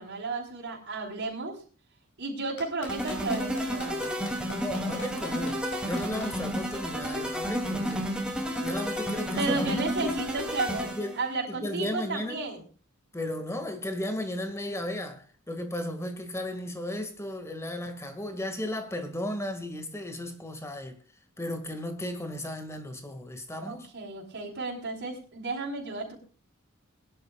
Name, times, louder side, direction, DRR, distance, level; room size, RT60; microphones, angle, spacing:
voice 1, 0.0-1.6 2.2-4.1 9.4-10.9 11.2-12.6 23.5-26.2, right 3 dB, 60° right, 4.1 m, -33 dB
Clapping, 2.6-6.3 7.8-7.9, left 2 dB, 60° left, 5.1 m, -41 dB
sound 1, 2.9-11.2, equal, 5° right, 2.7 m, -31 dB
voice 2, 4.6-8.1 8.6-10.2 10.8-11.2 11.5-12.4 13.1-21.0 21.4-23.9, left 1 dB, 15° left, 2.0 m, -35 dB
22.0 x 11.0 x 2.4 m
head